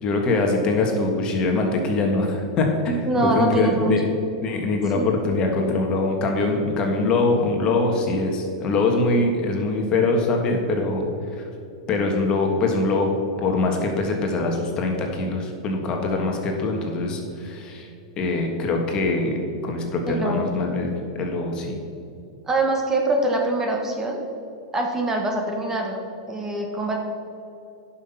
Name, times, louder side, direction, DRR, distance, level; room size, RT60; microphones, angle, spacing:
voice 1, 0.0-4.1 4.4-11.0 11.9-13.1 13.4-17.9 18.2-19.4 19.6-21.8, left 3 dB, 35° left, 2 dB, 1.6 m, -23 dB
voice 2, 3.1-3.9 4.9-5.1 20.1-20.5 22.5-24.2 24.7-26.0 26.3-27.0, right 2 dB, 15° right, 1 dB, 1.4 m, -24 dB
11.0 x 5.8 x 5.6 m, 2.7 s
hypercardioid pair, 125°, 3 cm